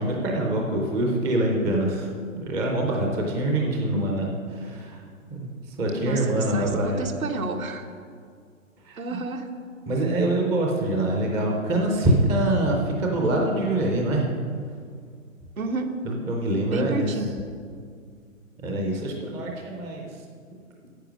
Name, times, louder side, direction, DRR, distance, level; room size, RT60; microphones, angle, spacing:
voice 1, 0.0-2.1 2.4-5.0 5.3-5.5 5.8-7.1 8.8-9.2 9.9-14.3 16.0-17.2 18.6-20.1, right 1 dB, 5° right, 0 dB, 0.4 m, -25 dB
voice 2, 6.0-7.9 9.0-9.5 15.6-15.9 16.6-17.4, right 2 dB, 80° right, 4 dB, 1.4 m, -30 dB
9.1 x 8.5 x 6.0 m, 2.1 s
hypercardioid pair, 130°, 41 cm